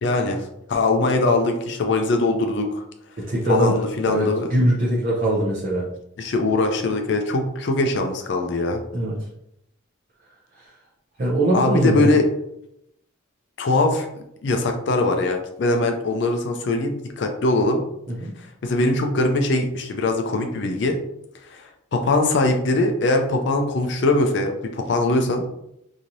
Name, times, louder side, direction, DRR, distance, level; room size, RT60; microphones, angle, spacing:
voice 1, 0.0-2.8 3.5-4.5 6.2-8.8 11.5-12.2 13.6-17.8 18.6-21.0 21.5-21.6 21.9-25.5, left 2 dB, 60° left, 4 dB, 0.4 m, -21 dB
voice 2, 3.2-5.9 8.9-9.1 10.5-10.7 11.2-12.1 18.1-18.3, right 1 dB, 45° right, -5 dB, 0.6 m, -22 dB
3.0 x 2.7 x 2.6 m, 0.78 s
head